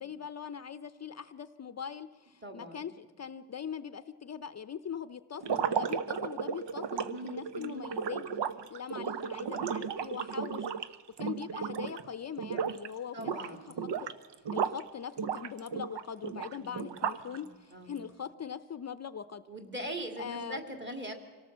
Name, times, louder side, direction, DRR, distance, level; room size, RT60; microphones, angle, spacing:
voice 1, 0.0-8.2 8.7-13.6 14.0-14.1 14.5-19.4 20.2-20.6, left 7 dB, 40° left, 13 dB, 0.6 m, -41 dB
voice 2, 2.4-2.9 6.9-7.9 13.1-13.8 16.5-17.0 17.3-18.0 19.5-21.1, right 1 dB, 25° right, 5 dB, 2.9 m, -42 dB
sound 1, 5.4-12.1 12.4-12.9 13.2-14.8 15.2-17.4, right 7 dB, 90° right, 1.0 m, -34 dB
25.5 x 18.0 x 7.4 m, 1.5 s
wide cardioid pair, 145°, 41 cm